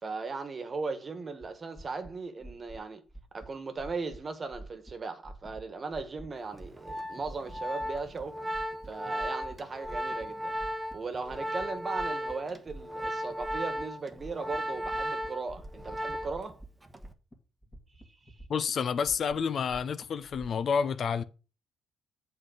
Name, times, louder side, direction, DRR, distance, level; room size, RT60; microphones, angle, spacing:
voice 1, 0.0-3.0 3.3-8.4 8.8-10.5 10.9-16.6 18.3-18.4, right 4 dB, 35° right, 1.4 m, -38 dB
sound 1, 1.4-1.5 1.8-2.1 2.4-2.8 3.1-3.5 3.8-4.2 4.5-4.9 5.2-5.6 5.9-6.3 6.6-6.9 7.2-8.3 8.5-8.9 9.2-9.6 9.8-10.3 10.6-11.6 12.0-12.3 12.7-13.1 13.4-13.8 14.1-14.6 14.8-16.7 17.0-17.3 17.6-18.7 19.1-20.5, right 1 dB, 20° left, 2.0 m, -47 dB
Organ, 6.5-16.5 16.8-17.1, equal, 15° right, 1.0 m, -35 dB
voice 2, 18.5-21.2, left 6 dB, 55° left, 0.6 m, -29 dB
7.8 x 3.9 x 6.4 m
cardioid pair, 85°, 0 cm